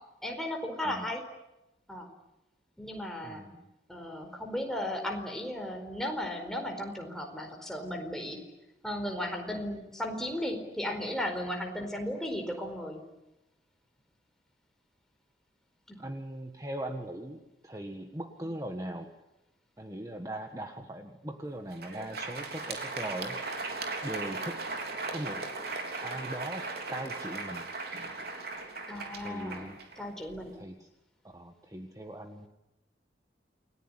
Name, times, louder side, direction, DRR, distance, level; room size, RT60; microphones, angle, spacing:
voice 1, 0.2-1.2 1.9-2.1 2.8-3.4 3.9-8.4 8.8-13.0 15.9-16.0 28.9-29.7 30.0-30.6, left 1 dB, 5° left, 2 dB, 4.5 m, -35 dB
voice 2, 3.2-3.7 16.0-19.1 19.8-23.6 24.0-24.6 25.1-25.5 26.0-27.7 29.2-29.8 30.5-30.9 31.2-32.5, right 1 dB, 20° right, 5 dB, 1.5 m, -40 dB
Crowd, 21.6-30.5, right 3 dB, 60° right, 3.7 m, -38 dB
29.0 x 19.5 x 9.9 m, 0.97 s
head